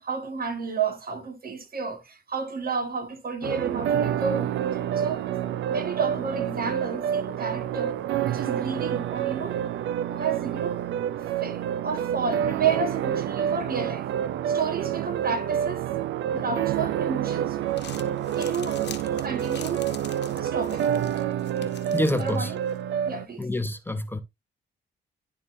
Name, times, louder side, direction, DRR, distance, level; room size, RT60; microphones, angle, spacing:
voice 1, 0.0-4.6 5.0-5.3 5.7-9.6 10.1-10.8 11.4-14.1 14.5-15.8 16.3-17.6 18.4-18.8 19.2-19.9 20.3-21.0 22.2-22.6 23.1-23.5, right 5 dB, 55° right, 1.6 m, -31 dB
sound 1, 3.4-23.3, right 10 dB, 85° right, 0.5 m, -28 dB
Crumpling crinkling, 17.5-22.8, left 8 dB, 65° left, 1.1 m, -45 dB
voice 2, 21.6-22.5 23.4-24.2, left 1 dB, 10° left, 0.8 m, -28 dB
11.0 x 3.8 x 2.6 m
cardioid pair, 65°, 19 cm